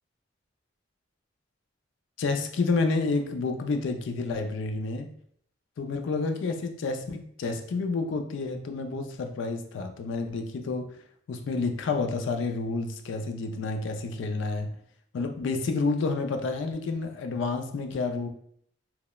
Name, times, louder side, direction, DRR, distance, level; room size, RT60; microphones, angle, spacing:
voice 1, 2.2-5.1 5.8-11.0 11.3-14.7 15.1-18.3, left 3 dB, 75° left, 6 dB, 0.3 m, -29 dB
2.8 x 2.0 x 2.2 m, 0.65 s
head